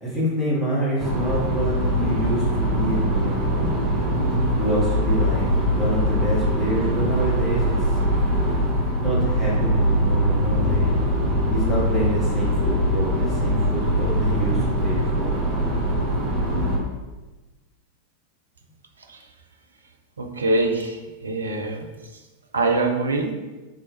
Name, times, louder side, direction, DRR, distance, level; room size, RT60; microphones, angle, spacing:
voice 1, 0.0-3.7 4.5-5.5 5.8-7.8 8.9-11.0 11.5-15.4, right 2 dB, 10° left, -9 dB, 1.5 m, -27 dB
sound 1, 1.0-16.8, equal, 30° right, 1.4 m, -22 dB
voice 2, 20.2-21.9 22.5-23.3, right 2 dB, 75° right, 4 dB, 0.4 m, -24 dB
3.6 x 3.2 x 3.1 m, 1.2 s
figure-of-eight pair, 90°, 0 cm